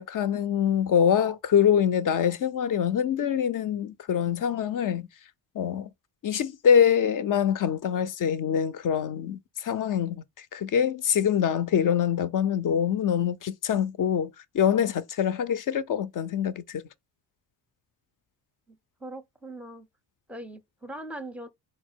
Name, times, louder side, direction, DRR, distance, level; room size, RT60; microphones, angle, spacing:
voice 1, 0.0-5.1 5.5-5.9 6.2-14.3 14.5-16.8, left 8 dB, 45° left, 0.6 m, -24 dB
voice 2, 18.7-19.9 20.3-21.5, right 1 dB, 5° right, 0.6 m, -41 dB
4.0 x 2.2 x 4.4 m
supercardioid pair, 70°, 46 cm